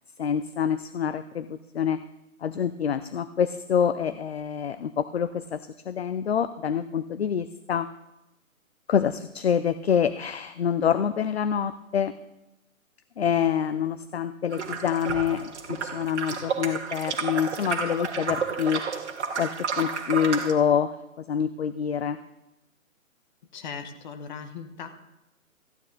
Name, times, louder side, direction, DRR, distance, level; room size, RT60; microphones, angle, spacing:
voice 1, 0.2-2.0 2.4-7.9 8.9-12.1 13.2-18.8 19.4-22.2, left 8 dB, 50° left, 13 dB, 0.5 m, -26 dB
sound 1, 14.5-20.5, right 5 dB, 50° right, 1.5 m, -31 dB
voice 2, 23.5-24.9, left 6 dB, 35° left, 8 dB, 1.1 m, -38 dB
14.5 x 9.6 x 3.9 m, 0.92 s
figure-of-eight pair, 145°, 42 cm